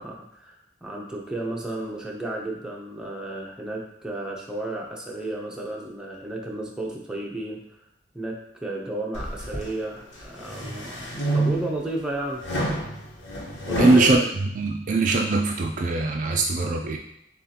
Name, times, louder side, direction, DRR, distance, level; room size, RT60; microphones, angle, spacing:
voice 1, 0.0-7.6 8.1-12.4 13.6-14.3, right 1 dB, 5° right, -3 dB, 0.8 m, -32 dB
sound 1, 9.1-9.7 10.2-11.8 12.4-14.1, right 1 dB, 85° left, 1.2 m, -28 dB
voice 2, 13.8-17.0, right 2 dB, 45° right, 2 dB, 0.4 m, -22 dB
7.2 x 2.5 x 2.9 m, 0.80 s
head